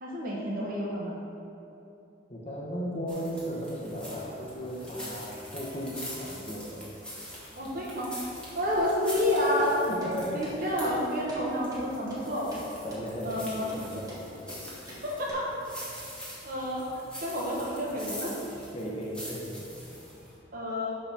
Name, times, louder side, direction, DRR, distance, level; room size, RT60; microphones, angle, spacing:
voice 1, 0.0-1.1 7.6-8.1 8.5-9.8 10.3-12.5 13.2-13.7 14.8-15.4 16.4-16.8 17.2-18.3 20.5-20.9, left 1 dB, 50° right, -4 dB, 1.3 m, -29 dB
voice 2, 2.3-6.8 9.9-10.7 12.8-14.1 18.7-19.6, equal, 35° left, -3 dB, 1.1 m, -36 dB
sound 1, 3.1-20.3, equal, 5° left, 1.6 m, -44 dB
sound 2, 8.7-8.9 9.2-9.3 9.6-9.7 10.0-10.1 10.4-10.5 10.8-11.0 11.3-11.4 11.7-11.8 12.1-12.2 12.5-12.6 12.9-13.0 13.3-13.4 13.7-13.8 14.1-14.2 14.5-14.6 14.9-15.0 15.3-15.4, right 1 dB, 20° right, 1.5 m, -44 dB
6.0 x 5.1 x 5.8 m, 2.8 s
head